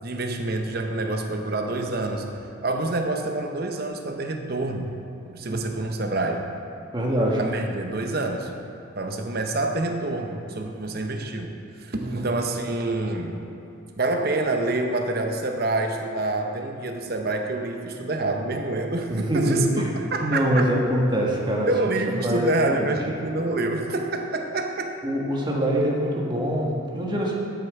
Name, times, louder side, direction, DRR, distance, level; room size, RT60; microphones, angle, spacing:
voice 1, 0.0-2.3 2.6-4.9 5.3-6.5 7.4-8.5 9.0-11.5 11.8-13.4 14.0-20.7 21.6-24.9, right 2 dB, 50° right, 4 dB, 0.8 m, -27 dB
voice 2, 6.9-7.4 12.0-12.3 19.1-19.9 20.2-21.9 22.2-22.9 25.0-27.4, equal, 20° right, -2 dB, 1.3 m, -24 dB
12.0 x 6.6 x 4.8 m, 2.8 s
head